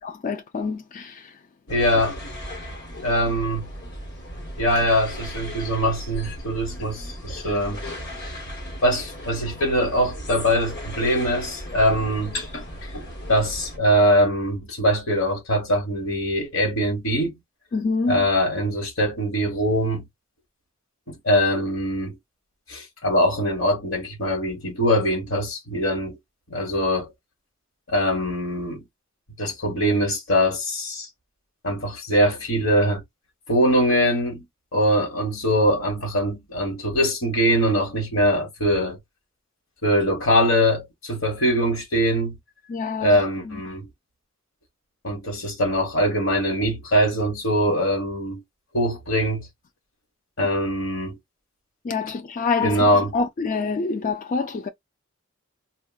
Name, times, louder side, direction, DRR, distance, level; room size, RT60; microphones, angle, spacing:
voice 1, 0.0-1.4 17.7-18.3 42.7-43.2 43.5-43.6 51.8-54.7, left 4 dB, 40° left, 0.4 m, -27 dB
voice 2, 1.7-2.2 3.0-3.7 4.6-7.8 8.2-8.4 8.8-12.6 12.9-17.4 18.1-20.0 21.1-22.2 22.7-26.2 26.5-27.1 27.9-28.8 29.4-31.1 31.6-33.0 33.5-34.4 34.7-39.0 39.8-42.4 43.0-43.9 45.0-48.4 48.7-49.5 50.4-51.2 52.6-53.1, equal, 85° left, 1.4 m, -22 dB
sound 1, 1.7-13.8, equal, 60° left, 1.3 m, -36 dB
4.4 x 2.4 x 2.3 m
head